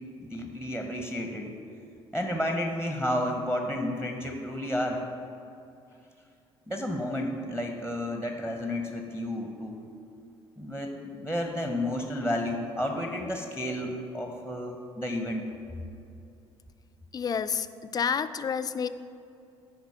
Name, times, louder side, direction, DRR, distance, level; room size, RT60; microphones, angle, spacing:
voice 1, 0.2-1.5 2.1-5.0 6.7-9.8 10.6-15.5, left 1 dB, 5° right, 3 dB, 0.8 m, -31 dB
voice 2, 17.1-18.9, left 7 dB, 30° left, 12 dB, 0.3 m, -29 dB
9.4 x 3.8 x 5.6 m, 2.6 s
hypercardioid pair, 55°, 14 cm